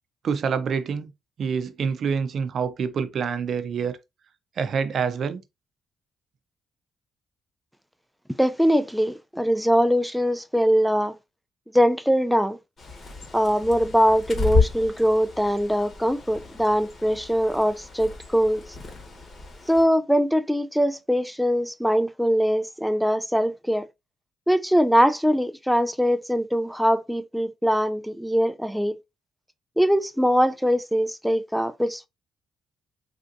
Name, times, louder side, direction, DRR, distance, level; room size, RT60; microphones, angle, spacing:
voice 1, 0.2-1.1 1.4-4.0 4.6-5.4, right 6 dB, 60° right, 0.5 m, -26 dB
voice 2, 8.4-11.1 11.7-12.6 13.3-18.6 19.7-23.8 24.5-28.9 29.8-32.1, equal, ahead, 0.3 m, -22 dB
Bird, 12.8-19.8, left 4 dB, 45° left, 1.1 m, -31 dB
3.3 x 2.7 x 2.5 m
cardioid pair, 90°, 0 cm